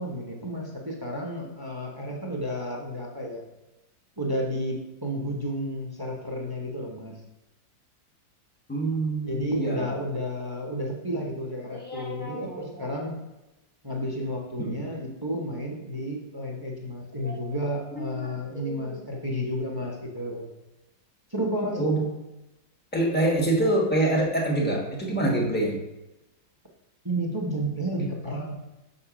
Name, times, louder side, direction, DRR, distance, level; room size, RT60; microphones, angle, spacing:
voice 1, 0.0-3.4 4.2-7.2 9.2-13.2 13.8-20.5 21.3-21.8 27.0-28.5, equal, 25° right, -1 dB, 0.5 m, -31 dB
voice 2, 8.7-9.9 11.7-12.8 14.6-14.8 17.2-17.4 18.0-19.0 21.7-22.0 22.9-25.8, right 1 dB, 5° left, -1 dB, 0.9 m, -26 dB
6.4 x 4.3 x 5.0 m, 0.97 s
omnidirectional pair, 2.1 m